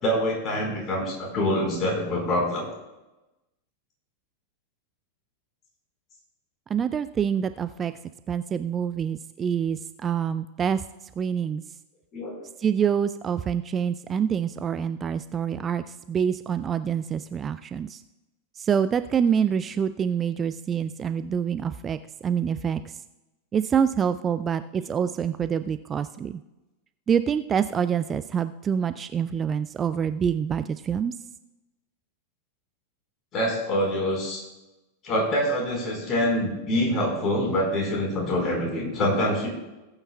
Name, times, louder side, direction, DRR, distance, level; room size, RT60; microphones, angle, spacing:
voice 1, 0.0-2.7 12.1-12.5 33.3-34.4 35.0-39.5, left 1 dB, 30° left, 0 dB, 4.3 m, -25 dB
voice 2, 6.7-7.9 8.3-10.8 11.2-11.6 12.6-18.0 18.6-22.9 23.5-26.4 27.1-31.1, right 7 dB, 25° right, 12 dB, 0.3 m, -26 dB
18.5 x 8.9 x 2.2 m, 1.0 s
figure-of-eight pair, 90°, 0 cm